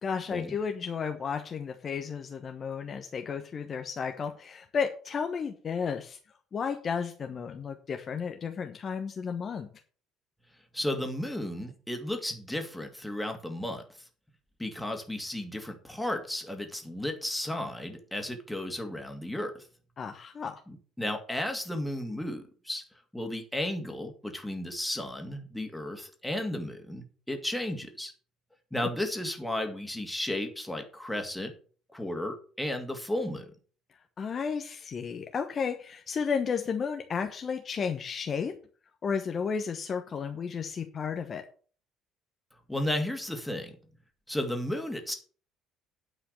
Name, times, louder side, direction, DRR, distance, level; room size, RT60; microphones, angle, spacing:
voice 1, 0.0-6.2 6.5-9.7 20.0-20.6 28.8-28.9 34.2-38.5 39.0-41.4, left 6 dB, 35° left, 6 dB, 1.1 m, -33 dB
voice 2, 10.7-13.8 14.6-19.6 20.7-22.8 23.1-28.1 28.7-31.5 31.9-33.5 42.7-43.7 44.3-45.1, left 1 dB, 5° left, 4 dB, 2.4 m, -34 dB
10.0 x 5.7 x 6.7 m, 0.41 s
figure-of-eight pair, 55°, 0 cm